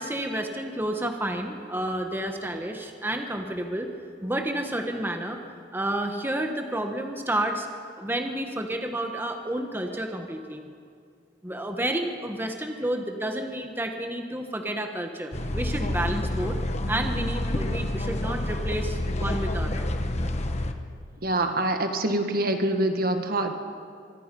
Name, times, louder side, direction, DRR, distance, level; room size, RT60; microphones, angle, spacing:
voice 1, 0.0-3.9 4.2-5.4 5.7-7.7 8.0-10.6 11.4-16.6 16.9-19.9, right 1 dB, 10° right, 4 dB, 1.3 m, -30 dB
sound 1, 15.3-20.7, left 1 dB, 35° left, 1.3 m, -28 dB
voice 2, 21.2-23.5, right 1 dB, 55° right, 6 dB, 1.8 m, -25 dB
24.5 x 24.5 x 5.4 m, 2.3 s
head